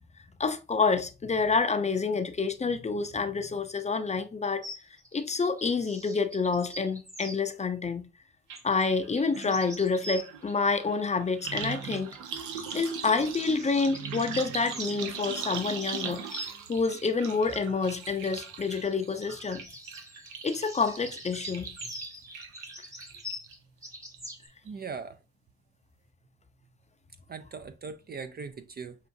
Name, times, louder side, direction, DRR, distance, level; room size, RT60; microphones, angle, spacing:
voice 1, 0.4-4.7 5.1-8.0 8.6-12.1 12.7-19.6 20.4-21.7, left 4 dB, 25° left, 0.5 m, -28 dB
sound 1, 4.6-7.4 8.6-10.5 11.8-15.1 15.4-17.0 18.3-24.5, equal, 10° right, 0.8 m, -44 dB
sound 2, 8.5-8.6 8.9-23.5 23.9-24.4 24.7-24.8, right 7 dB, 85° right, 0.7 m, -40 dB
voice 2, 24.6-25.2 27.3-29.0, right 5 dB, 35° right, 0.4 m, -39 dB
5.7 x 2.5 x 2.6 m
cardioid pair, 90°, 30 cm